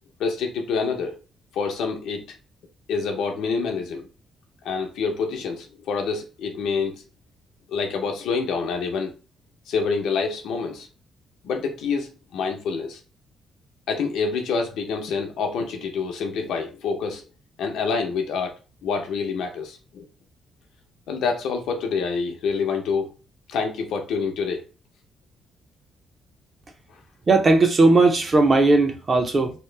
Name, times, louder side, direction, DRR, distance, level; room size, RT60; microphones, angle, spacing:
voice 1, 0.2-1.2 1.5-2.3 2.9-4.1 4.6-7.0 7.7-9.1 9.7-10.9 11.4-13.0 13.9-17.2 17.6-18.5 18.8-20.0 21.1-23.1 23.5-24.6, left 5 dB, 80° left, 0.6 m, -27 dB
voice 2, 27.3-29.5, right 3 dB, 25° right, 0.5 m, -17 dB
2.9 x 2.0 x 3.2 m
cardioid pair, 180°, 0 cm